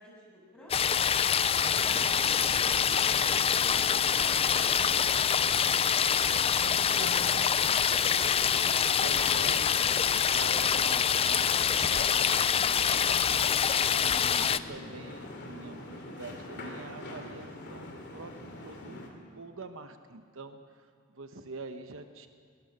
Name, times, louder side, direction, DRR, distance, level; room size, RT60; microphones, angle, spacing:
voice 1, 0.0-3.3 3.9-6.4 6.8-8.4, equal, 5° left, -4 dB, 7.1 m, -52 dB
sound 1, 0.7-14.6, left 7 dB, 30° left, 0.4 m, -25 dB
sound 2, 1.6-19.1, left 1 dB, 55° left, 2.9 m, -45 dB
voice 2, 6.5-7.8 8.4-13.4 14.0-22.3, right 3 dB, 70° right, 8 dB, 1.0 m, -46 dB
20.5 x 19.5 x 6.6 m, 2.3 s
head